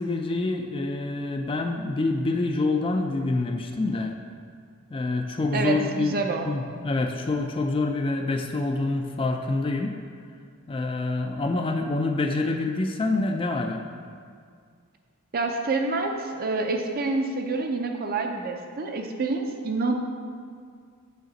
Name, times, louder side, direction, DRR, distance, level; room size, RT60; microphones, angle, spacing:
voice 1, 0.0-4.1 4.9-10.0 10.7-13.8, left 2 dB, 25° left, 4 dB, 0.3 m, -26 dB
voice 2, 5.5-6.5 15.3-19.9, right 3 dB, 45° right, 4 dB, 0.5 m, -27 dB
6.4 x 5.0 x 4.0 m, 2.1 s
head